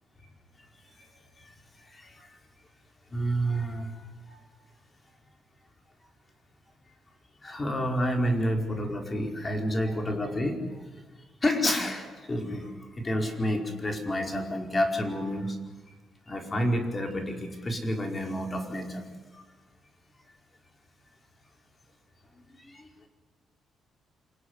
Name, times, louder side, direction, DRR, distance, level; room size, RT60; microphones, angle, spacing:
voice 1, 1.4-2.3 3.1-4.0 4.3-4.4 7.4-10.8 11.4-15.6 16.3-19.0 19.3-19.4 22.5-22.9, equal, 25° left, 3 dB, 5.0 m, -30 dB
27.5 x 20.0 x 9.8 m, 1.2 s
cardioid pair, 90°, 0 cm